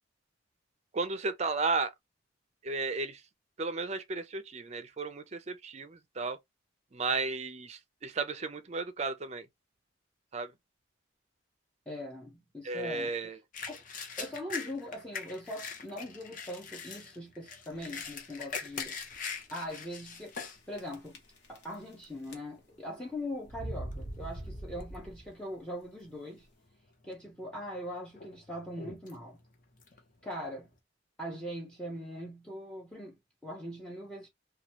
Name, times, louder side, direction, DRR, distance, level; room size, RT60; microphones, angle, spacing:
voice 1, 0.9-1.9 2.6-3.2 3.6-6.4 6.9-9.5 10.3-10.5 12.6-13.4, right 3 dB, 35° right, 0.4 m, -34 dB
voice 2, 11.9-13.1 13.7-13.8 14.2-19.0 19.5-20.4 20.7-21.2 21.5-26.5 27.0-29.4 30.2-30.7 31.2-34.3, equal, 5° left, 0.7 m, -41 dB
sound 1, 13.5-20.6 21.1-21.2 21.7-22.1 22.8-23.0 23.3-24.5 24.8-25.3 25.7-25.8 26.7-27.2 27.6-30.7, left 5 dB, 45° left, 0.7 m, -42 dB
sound 2, 17.7-18.1 18.8-18.9 19.1-19.2 20.1-20.5 20.8-21.9 22.2-22.8 23.5-25.4, right 1 dB, 65° left, 1.1 m, -42 dB
3.0 x 2.3 x 2.9 m
head